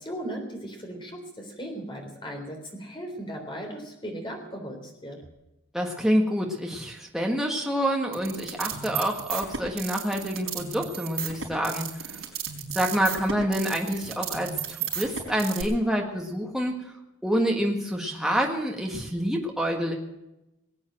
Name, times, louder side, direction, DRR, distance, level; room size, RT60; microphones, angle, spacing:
voice 1, 0.0-5.2, right 1 dB, 25° left, 2 dB, 3.6 m, -37 dB
voice 2, 5.7-12.2 12.7-16.8 17.2-19.9, equal, ahead, 0 dB, 1.7 m, -27 dB
sound 1, 8.1-15.6, right 8 dB, 75° right, 4.3 m, -33 dB
20.0 x 8.8 x 7.6 m, 0.91 s
head